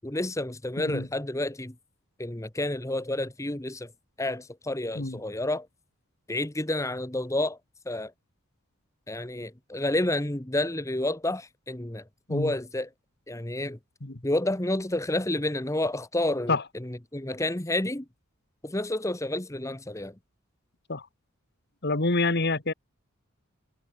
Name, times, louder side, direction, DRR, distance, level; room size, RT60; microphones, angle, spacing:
voice 1, 0.0-1.7 2.2-3.9 4.2-5.7 6.3-7.6 7.9-8.1 9.1-12.0 12.3-12.9 13.3-13.8 14.2-18.0 18.6-20.1, left 1 dB, 15° left, 1.2 m, -30 dB
voice 2, 21.8-22.7, left 3 dB, 50° left, 1.8 m, -26 dB
head